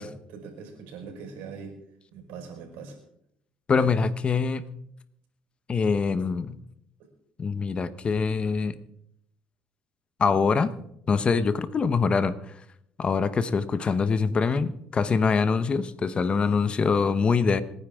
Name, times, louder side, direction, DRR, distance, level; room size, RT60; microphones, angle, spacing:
voice 1, 0.0-1.7 2.1-3.0 3.8-4.0 7.0-7.1, right 5 dB, 90° right, 4 dB, 4.8 m, -41 dB
voice 2, 3.7-4.6 5.7-6.6 7.4-8.7 10.2-10.7 11.1-12.3 13.0-17.6, left 5 dB, 35° left, 14 dB, 1.0 m, -24 dB
26.5 x 10.0 x 3.7 m, 0.74 s
cardioid pair, 110°, 3 cm